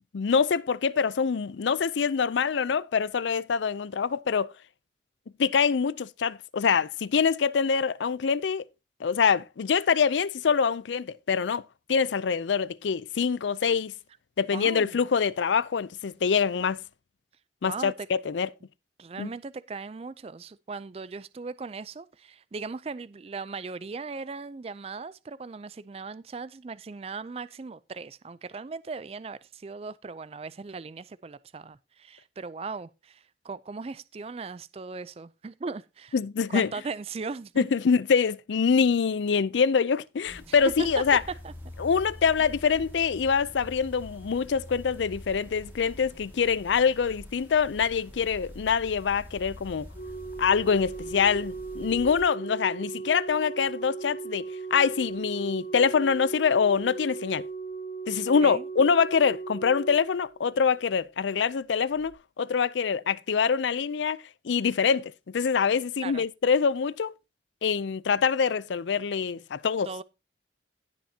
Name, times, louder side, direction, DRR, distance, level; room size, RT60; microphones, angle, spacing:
voice 1, 0.1-4.5 5.4-8.6 9.0-11.6 11.9-13.9 14.4-16.8 17.6-18.5 19.2-19.3 36.1-36.7 37.6-41.2 41.8-49.9 50.4-57.4 58.1-67.1 67.6-69.9, left 6 dB, 85° left, 0.5 m, -25 dB
voice 2, 14.5-15.1 17.6-18.1 19.0-36.2 36.5-37.7 40.5-41.2 41.4-41.5 58.4-58.7 66.0-66.2 69.8-70.0, right 4 dB, 35° right, 0.4 m, -38 dB
sound 1, 40.3-52.2, left 1 dB, 10° right, 1.9 m, -45 dB
Organ, 50.0-60.8 62.0-62.2, right 4 dB, 45° left, 0.9 m, -38 dB
17.0 x 6.0 x 2.8 m
head